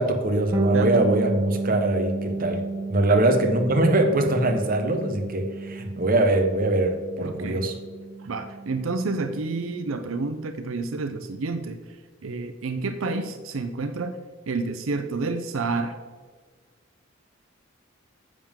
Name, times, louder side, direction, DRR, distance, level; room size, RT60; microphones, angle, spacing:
voice 1, 0.0-2.6 2.9-7.8, right 1 dB, 45° right, 4 dB, 1.1 m, -22 dB
Bass guitar, 0.5-10.1, right 3 dB, 15° right, 0.8 m, -32 dB
voice 2, 0.7-1.1 3.0-3.2 7.2-7.7 8.2-11.8 12.2-14.2 14.5-16.0, right 3 dB, 85° right, 8 dB, 0.6 m, -29 dB
9.9 x 7.4 x 3.7 m, 1.5 s
head